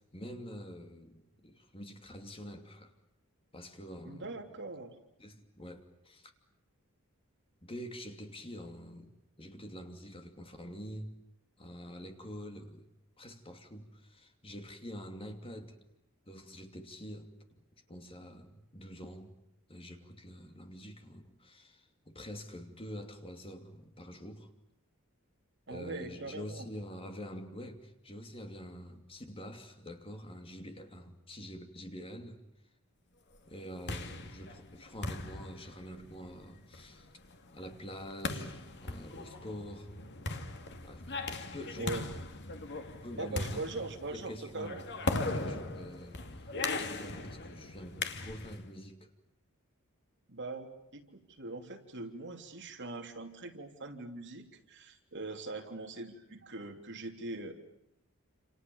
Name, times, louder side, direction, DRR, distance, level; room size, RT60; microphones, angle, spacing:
voice 1, 0.1-2.9 3.5-4.4 5.2-6.3 7.6-9.1 9.4-11.1 11.6-12.8 13.2-15.8 16.3-17.3 17.9-19.4 19.7-24.5 25.7-32.4 33.5-37.1 37.5-39.9 40.8-42.0 43.0-46.2 46.7-49.1, equal, 25° left, 2.8 m, -46 dB
voice 2, 4.0-5.0 25.7-26.7 41.8-42.0 43.2-44.8 50.3-57.5, right 2 dB, 55° right, 3.4 m, -41 dB
sound 1, 33.5-48.7, left 3 dB, 55° left, 2.3 m, -39 dB
29.0 x 28.5 x 7.1 m
head